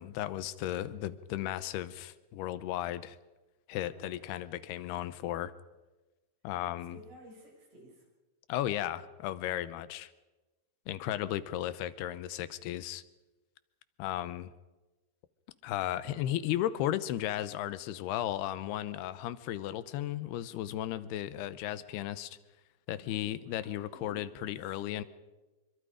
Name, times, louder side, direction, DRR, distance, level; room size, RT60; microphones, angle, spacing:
voice 1, 0.0-3.2 3.7-5.5 6.4-7.0 8.5-10.1 10.9-13.0 14.0-14.5 15.6-22.4 22.9-25.0, left 12 dB, 85° left, 14 dB, 2.8 m, -35 dB
voice 2, 3.9-4.2 6.9-8.1 11.2-11.6 22.9-24.3 24.6-24.9, right 1 dB, 70° right, -2 dB, 8.8 m, -55 dB
25.5 x 24.0 x 5.0 m, 1.1 s
omnidirectional pair, 4.5 m